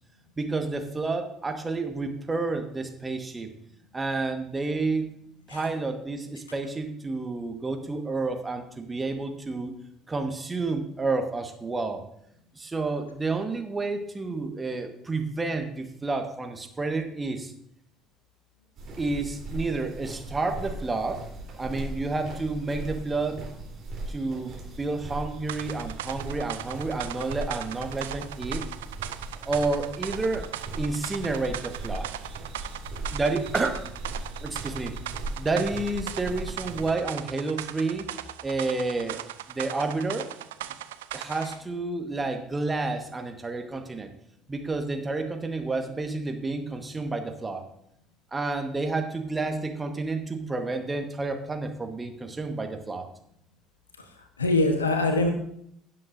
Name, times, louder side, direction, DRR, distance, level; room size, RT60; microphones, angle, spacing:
voice 1, 0.4-3.5 3.9-5.1 5.5-9.7 10.1-12.0 12.5-17.5 19.0-21.3 21.6-23.4 24.1-28.7 29.4-30.5 30.8-32.1 33.1-33.8 34.4-35.0 35.4-38.1 38.4-39.2 39.5-40.3 41.1-44.1 44.5-47.6 48.3-53.1, right 3 dB, 20° right, 5 dB, 1.5 m, -30 dB
sound 1, 18.8-36.9, right 2 dB, 45° right, 3.7 m, -38 dB
sound 2, 25.5-41.6, right 12 dB, 75° right, 0.4 m, -38 dB
voice 2, 54.0-55.3, left 2 dB, 85° left, 6 dB, 1.2 m, -25 dB
16.5 x 7.7 x 2.7 m, 0.72 s
figure-of-eight pair, 60°, 0 cm